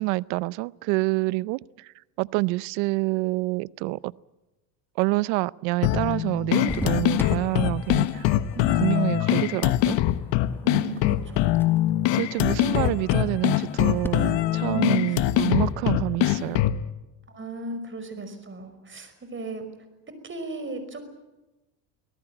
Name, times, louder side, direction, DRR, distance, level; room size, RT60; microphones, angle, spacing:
voice 1, 0.0-1.9 2.2-4.1 5.0-8.3 8.8-10.0 12.1-16.7, right 23 dB, 75° right, 0.7 m, -27 dB
sound 1, 5.8-16.8, left 14 dB, 65° left, 1.3 m, -23 dB
sound 2, 6.7-14.1, left 1 dB, 5° left, 1.5 m, -40 dB
voice 2, 8.5-9.0 10.6-11.5 12.7-12.8 14.7-15.4 17.3-19.7 20.2-21.1, left 1 dB, 25° right, 5.3 m, -34 dB
24.5 x 18.0 x 9.0 m
supercardioid pair, 95°, 46 cm